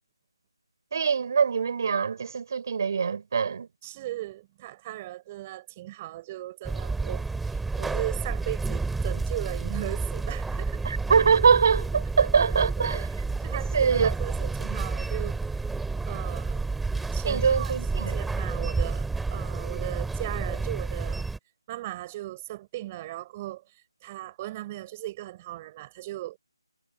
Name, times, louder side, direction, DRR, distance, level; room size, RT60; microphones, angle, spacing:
voice 1, 0.9-3.7 10.8-13.1 13.5-14.1 17.3-18.1, right 6 dB, 45° right, 4.8 m, -23 dB
voice 2, 3.8-10.8 12.4-12.5 12.8-13.0 13.4-15.7 16.1-16.6 17.1-21.3 21.7-23.6 24.0-26.4, right 16 dB, 20° right, 4.4 m, -37 dB
sound 1, 6.6-21.4, right 3 dB, 5° right, 2.7 m, -30 dB
figure-of-eight pair, 155°, 3 cm